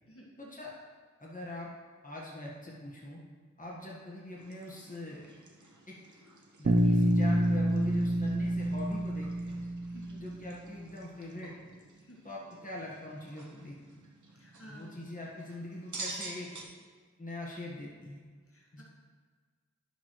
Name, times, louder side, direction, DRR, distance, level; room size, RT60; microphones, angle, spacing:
voice 1, 0.4-0.7 1.2-1.7 2.0-3.2 3.6-5.3 5.9-6.0 6.6-9.6 10.2-11.7 12.2-13.8 14.7-16.7 17.2-18.2 18.7-18.8, left 1 dB, 25° left, -4 dB, 1.4 m, -42 dB
sound 1, 4.4-16.6, right 3 dB, 80° right, 0.9 m, -49 dB
Bass guitar, 6.6-10.7, right 1 dB, 40° right, 0.7 m, -28 dB
voice 2, 9.9-10.3 12.0-12.2 14.4-14.9 18.5-18.8, equal, 50° left, -3 dB, 1.7 m, -53 dB
11.0 x 7.1 x 3.1 m, 1.5 s
wide cardioid pair, 45°, 29 cm